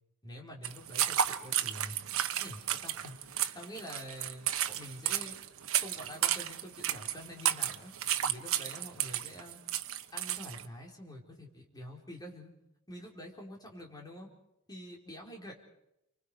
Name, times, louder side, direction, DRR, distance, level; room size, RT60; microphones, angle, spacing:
voice 1, 0.2-2.0 2.4-5.4 5.8-7.9 8.2-9.6 10.1-12.5 12.9-14.3 14.7-15.5, equal, 20° left, 0 dB, 4.4 m, -47 dB
sound 1, 0.6-10.6, right 11 dB, 65° right, 1.1 m, -33 dB
30.0 x 24.5 x 5.0 m, 0.83 s
head